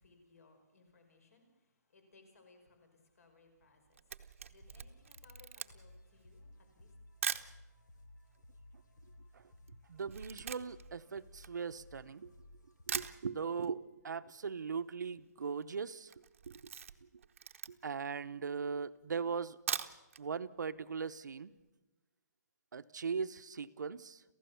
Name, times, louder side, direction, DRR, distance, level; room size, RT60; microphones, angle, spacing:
voice 1, 0.0-6.9, left 3 dB, 55° left, 6 dB, 5.6 m, -65 dB
Camera, 3.7-7.6 8.2-8.3 8.5-12.2 12.6-12.7 12.9-13.7 14.0-14.1 14.4-14.5 14.7-15.1 15.4-15.7 16.0-18.0 18.6-18.7 19.5-20.2 20.6-20.7 21.1-21.2, right 7 dB, 45° right, 0.9 m, -42 dB
sound 1, 4.6-13.2, left 1 dB, 85° left, 3.5 m, -59 dB
voice 2, 9.9-12.3 12.9-16.1 16.5-16.6 17.0-17.1 17.7-19.6 20.2-21.5 22.7-24.2, right 5 dB, 80° right, 11 dB, 0.9 m, -39 dB
28.5 x 15.5 x 7.0 m, 1.1 s
hypercardioid pair, 175°, 10 cm